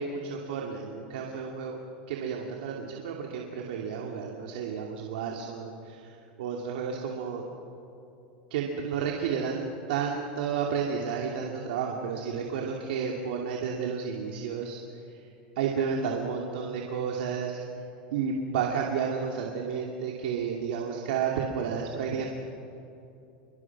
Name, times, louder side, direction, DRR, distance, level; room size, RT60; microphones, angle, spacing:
voice 1, 0.0-1.8 2.1-6.1 6.4-7.4 8.5-14.8 15.1-15.2 15.6-17.6 18.1-22.3, right 6 dB, 80° right, 0 dB, 2.7 m, -31 dB
29.0 x 24.0 x 6.1 m, 2.8 s
supercardioid pair, 130°, 5 cm